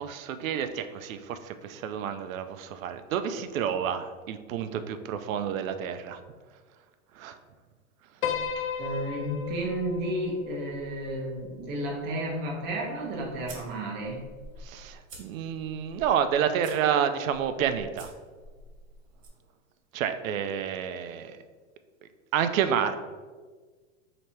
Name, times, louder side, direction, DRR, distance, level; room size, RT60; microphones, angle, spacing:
voice 1, 0.0-6.2 7.1-7.4 14.6-18.1 19.9-21.4 22.3-23.0, right 8 dB, 85° right, 10 dB, 0.5 m, -29 dB
Piano, 8.2-12.6, left 6 dB, 85° left, 0.6 m, -36 dB
voice 2, 8.8-14.2, right 1 dB, 25° right, -2 dB, 0.7 m, -32 dB
sound 1, 12.7-19.3, right 2 dB, 70° right, 1.3 m, -50 dB
3.2 x 2.9 x 4.3 m, 1.4 s
supercardioid pair, 150°, 40 cm